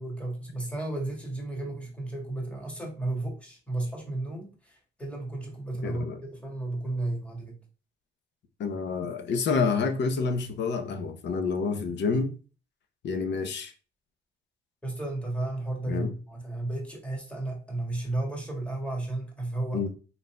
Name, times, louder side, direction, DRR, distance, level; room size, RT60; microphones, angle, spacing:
voice 1, 0.0-7.6 14.8-19.8, right 2 dB, 5° left, 1.5 m, -33 dB
voice 2, 5.8-6.2 8.6-12.3 13.0-13.7 15.9-16.1 19.7-19.9, left 4 dB, 65° left, 0.7 m, -28 dB
4.0 x 3.9 x 2.2 m
cardioid pair, 90°, 20 cm